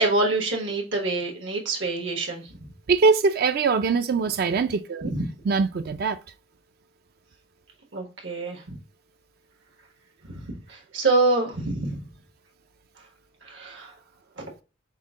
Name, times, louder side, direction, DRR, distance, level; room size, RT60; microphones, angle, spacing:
voice 1, 0.0-2.6 5.0-5.2 7.9-8.8 10.3-12.0 13.4-13.9 14.4-14.5, right 2 dB, 80° right, 1.3 m, -26 dB
voice 2, 2.9-5.1 5.5-6.2, right 4 dB, 55° right, 0.4 m, -22 dB
5.5 x 2.1 x 3.6 m
head